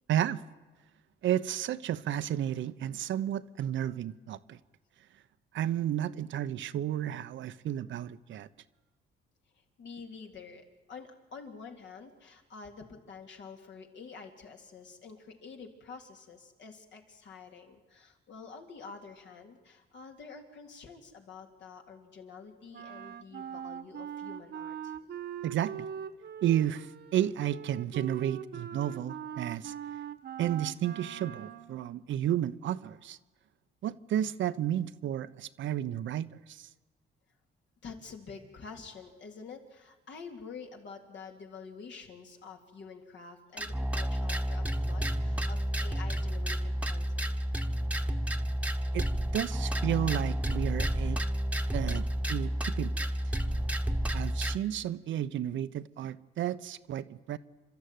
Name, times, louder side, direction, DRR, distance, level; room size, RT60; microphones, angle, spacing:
voice 1, 0.1-0.4 1.2-4.6 5.5-8.5 25.4-25.9 26.4-29.7 30.4-33.2 33.8-36.7 48.9-49.1 49.3-51.2 51.7-53.1 54.1-57.4, right 11 dB, 75° right, 0.9 m, -32 dB
voice 2, 9.8-24.9 37.8-47.3, left 5 dB, 65° left, 3.5 m, -48 dB
Wind instrument woodwind instrument, 22.7-31.7, right 9 dB, 55° right, 1.3 m, -41 dB
sound 1, 43.6-54.6, equal, 5° right, 1.3 m, -31 dB
29.0 x 13.0 x 9.4 m
cardioid pair, 90°, 20 cm